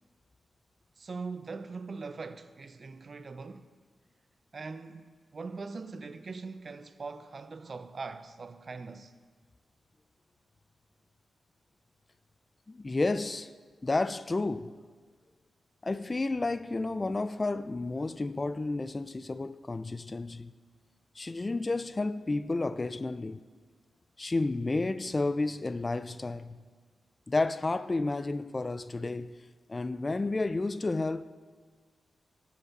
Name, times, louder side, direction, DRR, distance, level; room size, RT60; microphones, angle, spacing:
voice 1, 1.0-3.7 4.5-9.1, right 4 dB, 50° right, 0.5 m, -41 dB
voice 2, 12.7-13.5 13.8-14.7 15.8-20.5 21.2-23.4 24.2-26.6 27.3-29.4 29.7-31.3, left 2 dB, 30° left, 0.3 m, -31 dB
13.0 x 5.8 x 4.1 m
cardioid pair, 60°, 0 cm